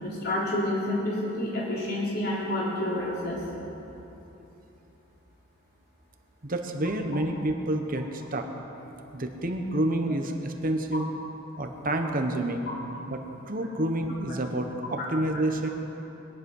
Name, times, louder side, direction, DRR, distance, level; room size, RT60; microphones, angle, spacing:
voice 1, 0.0-3.4, left 1 dB, 50° left, -6 dB, 4.0 m, -29 dB
voice 2, 6.4-8.4 9.1-11.1 11.6-12.7 13.1-15.7, right 1 dB, 40° right, 4 dB, 1.2 m, -29 dB
21.5 x 11.0 x 5.5 m, 3.0 s
head